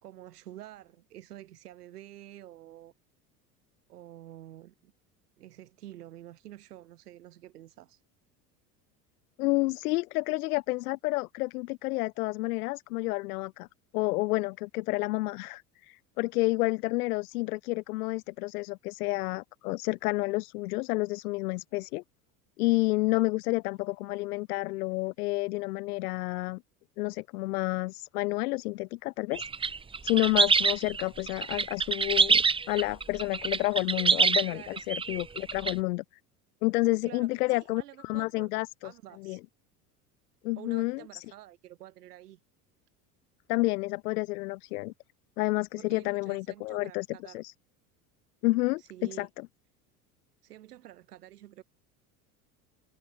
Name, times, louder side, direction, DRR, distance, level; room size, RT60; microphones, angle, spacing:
voice 1, 0.0-2.9 3.9-4.9 5.4-8.0 34.5-34.8 37.0-38.5 38.8-39.4 40.6-42.4 45.8-47.4 48.8-49.3 50.4-51.6, right 13 dB, 85° right, 3.9 m, -49 dB
voice 2, 9.4-13.7 13.9-22.0 22.6-26.6 27.0-29.7 30.0-36.0 36.6-38.9 39.2-39.4 40.4-41.2 43.5-44.9 45.4-47.5 48.4-49.3, left 21 dB, 75° left, 2.6 m, -30 dB
sound 1, 29.3-35.7, right 5 dB, 10° right, 0.6 m, -26 dB
hypercardioid pair, 85°, 45 cm